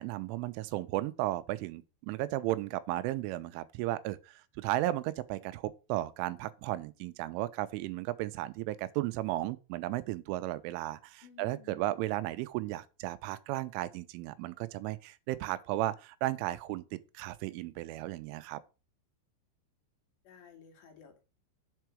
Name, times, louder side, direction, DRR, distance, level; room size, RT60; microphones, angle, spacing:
voice 1, 0.0-18.6, right 16 dB, 85° right, 3.1 m, -35 dB
voice 2, 11.2-11.9 20.2-21.2, left 6 dB, 70° left, 4.0 m, -55 dB
7.7 x 4.6 x 6.1 m
omnidirectional pair, 5.5 m